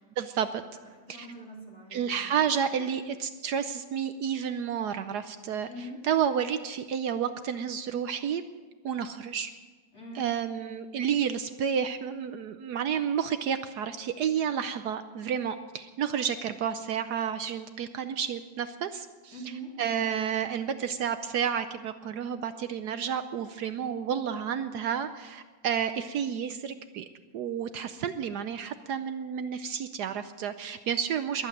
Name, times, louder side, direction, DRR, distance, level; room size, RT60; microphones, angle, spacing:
voice 1, 0.2-0.6 1.2-1.3 1.9-5.7 6.0-8.4 8.8-9.5 10.1-19.3 19.8-27.1 27.3-31.5, right 8 dB, 70° right, 10 dB, 1.2 m, -30 dB
voice 2, 1.1-2.9 5.6-6.0 9.9-10.3 19.3-19.7, right 1 dB, 40° left, -4 dB, 4.5 m, -44 dB
22.0 x 8.6 x 7.7 m, 1.4 s
omnidirectional pair, 1.9 m